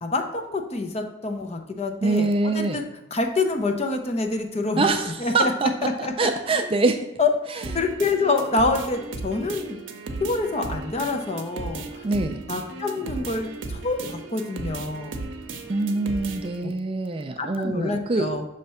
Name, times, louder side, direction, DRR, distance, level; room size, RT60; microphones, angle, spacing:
voice 1, 0.0-2.8 3.1-4.9 5.2-5.5 5.8-6.3 7.2-7.3 7.7-9.8 10.2-12.0 12.5-15.2 16.6-16.7 17.4-18.4, left 3 dB, 30° left, 5 dB, 0.6 m, -26 dB
voice 2, 2.0-2.8 4.8-5.7 6.0-7.0 12.0-12.4 15.7-18.3, right 3 dB, 25° right, 6 dB, 0.3 m, -24 dB
sound 1, 7.6-16.6, right 3 dB, 65° right, 0.6 m, -36 dB
5.8 x 3.2 x 5.6 m, 0.94 s
head